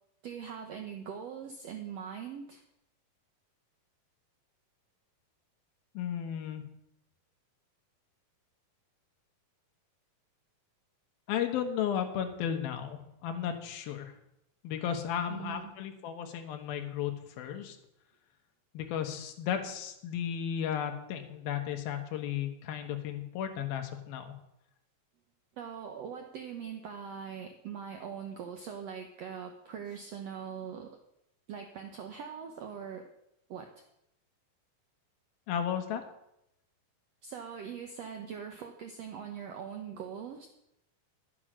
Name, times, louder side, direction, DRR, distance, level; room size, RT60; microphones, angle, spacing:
voice 1, 0.2-2.6 15.3-15.7 25.6-30.9 31.5-33.1 33.5-33.7 37.2-40.5, right 7 dB, 90° right, 4 dB, 1.4 m, -42 dB
voice 2, 5.9-6.6 11.3-14.1 14.6-17.1 17.4-17.8 18.7-24.3 35.5-36.0, left 9 dB, 80° left, 5 dB, 3.1 m, -34 dB
11.5 x 8.3 x 6.2 m, 0.81 s
omnidirectional pair, 4.3 m